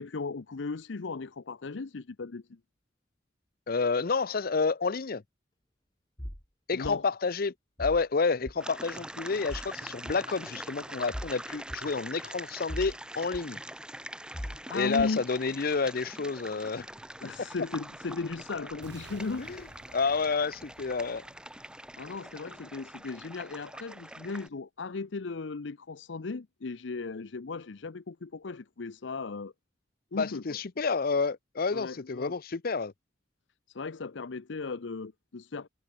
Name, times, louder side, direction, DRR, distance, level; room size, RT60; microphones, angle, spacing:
voice 1, 0.0-2.6 6.7-7.0 14.2-15.2 17.2-19.5 22.0-29.5 30.1-30.6 31.7-32.3 33.7-35.7, left 4 dB, 90° left, 0.7 m, -37 dB
voice 2, 3.7-5.2 6.7-7.5 7.8-13.6 14.7-16.9 19.4-19.6 19.9-21.2 30.1-32.9, left 4 dB, 55° left, 0.6 m, -29 dB
sound 1, 6.2-6.4 6.8-7.0 7.8-8.0 8.5-8.6 9.5-9.7 10.1-10.2 11.1-11.3 11.7-11.8 12.7-13.0 13.3-13.4 14.3-14.6 15.0-15.1, equal, 25° left, 3.6 m, -38 dB
sound 2, 8.6-24.5, right 1 dB, 5° right, 3.7 m, -44 dB
sound 3, 18.8-22.8, right 2 dB, 70° right, 6.8 m, -54 dB
head